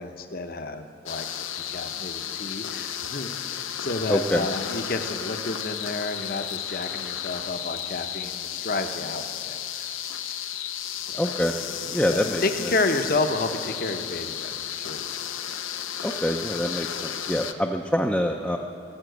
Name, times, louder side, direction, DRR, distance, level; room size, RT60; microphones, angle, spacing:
voice 1, 0.0-10.0 10.9-11.2 11.9-15.1, left 3 dB, 45° left, 7 dB, 0.8 m, -31 dB
sound 1, 1.1-17.5, left 9 dB, 80° left, 0.6 m, -33 dB
voice 2, 4.1-4.4 11.2-11.5 11.9-12.7 16.0-18.6, equal, 5° left, 1 dB, 0.5 m, -25 dB
17.5 x 7.3 x 7.9 m, 2.6 s
head